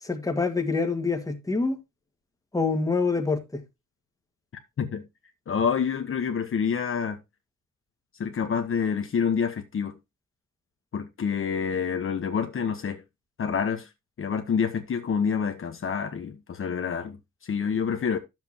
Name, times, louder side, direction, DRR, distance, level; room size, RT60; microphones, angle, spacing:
voice 1, 0.0-1.8 2.5-3.6, left 4 dB, 10° left, 1.8 m, -26 dB
voice 2, 4.8-5.1 5.5-7.2 8.2-10.0 10.9-13.0 13.4-13.9 14.2-18.2, left 6 dB, 45° left, 1.2 m, -27 dB
10.0 x 7.5 x 2.9 m
cardioid pair, 90°, 30 cm